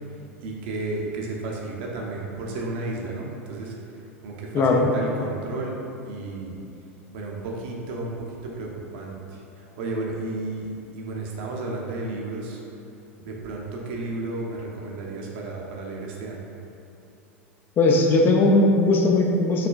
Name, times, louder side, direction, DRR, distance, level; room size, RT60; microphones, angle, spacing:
voice 1, 0.4-3.8 4.2-5.8 6.0-6.6 7.1-10.7 10.9-12.6 13.2-16.5, right 2 dB, 50° right, -1 dB, 0.6 m, -33 dB
voice 2, 4.5-4.9 17.8-19.7, left 2 dB, 30° left, 1 dB, 0.4 m, -18 dB
4.8 x 3.1 x 2.3 m, 2.8 s
figure-of-eight pair, 85°, 8 cm